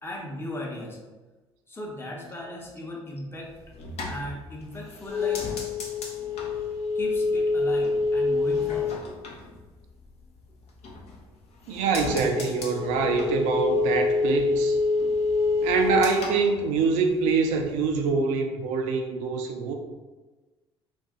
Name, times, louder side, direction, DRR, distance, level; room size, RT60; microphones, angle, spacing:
voice 1, 0.0-1.0 1.7-3.5 4.1-5.4 6.9-9.4, left 1 dB, 15° left, -1 dB, 0.9 m, -37 dB
sound 1, 3.5-10.3 10.6-11.3 11.6-17.3 17.6-18.1, left 4 dB, 50° left, 0.8 m, -27 dB
voice 2, 11.7-14.8 15.6-19.7, right 4 dB, 60° right, 4 dB, 0.4 m, -25 dB
3.1 x 2.5 x 3.6 m, 1.2 s
figure-of-eight pair, 55°, 14 cm